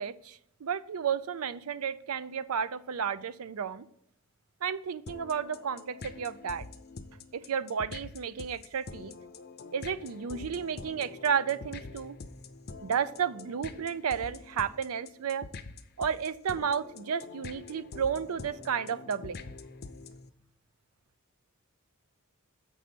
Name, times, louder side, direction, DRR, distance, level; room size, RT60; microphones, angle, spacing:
voice 1, 0.0-3.9 4.6-6.6 7.3-9.1 9.7-12.2 12.8-15.5 16.0-19.4, right 7 dB, 85° right, 15 dB, 0.5 m, -32 dB
sound 1, 5.1-20.3, left 3 dB, 45° left, 0.6 m, -45 dB
7.3 x 5.4 x 6.0 m, 0.72 s
head